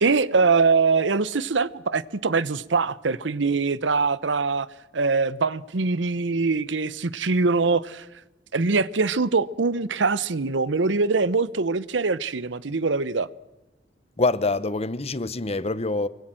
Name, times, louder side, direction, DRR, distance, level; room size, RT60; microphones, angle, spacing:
voice 1, 0.0-4.7 4.9-8.0 8.5-13.3, right 4 dB, 80° right, 0.8 m, -23 dB
voice 2, 14.2-16.1, left 3 dB, 35° left, 0.9 m, -25 dB
24.5 x 24.0 x 7.7 m
head